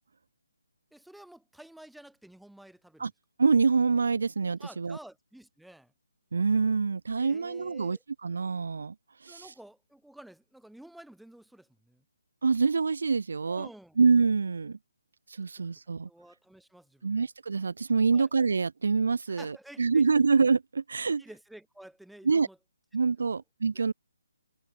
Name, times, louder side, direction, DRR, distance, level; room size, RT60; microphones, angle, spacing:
voice 1, 0.9-3.1 4.6-5.9 7.2-8.0 9.3-12.0 13.5-14.0 16.0-17.3 18.1-18.3 19.3-20.0 21.2-22.6 23.2-23.4 23.7-23.9, right 1 dB, ahead, 4.3 m, -51 dB
voice 2, 3.4-5.0 6.3-8.9 9.2-9.4 12.4-13.7 14.0-14.8 15.3-16.1 17.0-21.2 22.2-22.5 22.9-23.9, right 4 dB, 55° right, 0.9 m, -26 dB
figure-of-eight pair, 140°, 0 cm